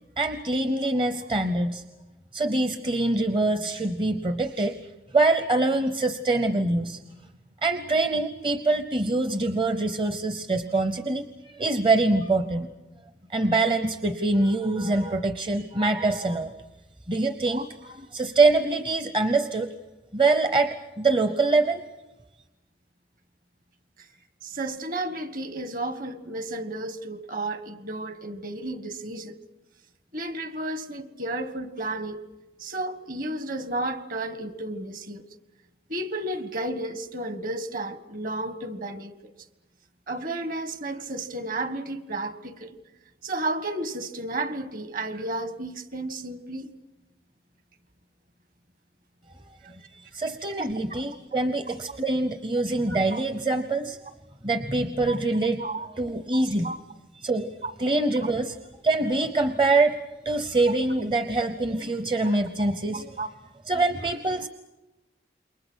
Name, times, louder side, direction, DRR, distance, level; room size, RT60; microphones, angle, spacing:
voice 1, 0.2-1.8 2.3-4.8 5.1-7.0 7.6-12.7 13.3-16.5 17.1-19.7 20.1-21.8 50.1-54.0 54.4-55.6 56.0-56.7 57.2-57.5 57.8-58.6 58.8-60.0 60.2-63.2 63.7-64.5, right 2 dB, 25° right, 0.8 m, -24 dB
voice 2, 24.4-29.4 30.1-32.2 32.6-35.3 35.9-39.3 40.1-42.8 43.2-46.7 50.6-50.7 52.9-53.2 55.1-55.2 55.6-55.9 56.3-56.8 57.6-57.7 62.6-62.7 63.2-63.3, right 2 dB, 50° right, 1.5 m, -32 dB
28.5 x 23.0 x 6.4 m
head